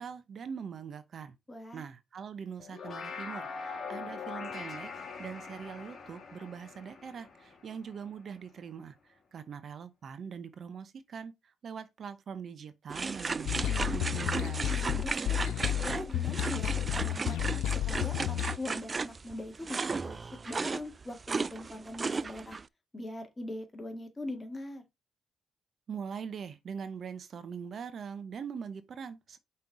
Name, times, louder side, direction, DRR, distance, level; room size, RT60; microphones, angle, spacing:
voice 1, 0.0-1.4 1.7-4.9 5.2-14.7 25.9-29.4, right 6 dB, 55° right, 0.7 m, -42 dB
voice 2, 1.5-1.8 14.7-17.4 17.9-22.6 22.9-24.8, left 1 dB, 20° left, 1.9 m, -42 dB
sound 1, 2.6-8.1, left 5 dB, 40° left, 2.2 m, -42 dB
sound 2, 12.9-22.6, right 4 dB, 30° right, 0.3 m, -35 dB
sound 3, 13.5-18.6, left 13 dB, 85° left, 0.3 m, -32 dB
5.4 x 4.4 x 4.9 m
cardioid pair, 90°, 0 cm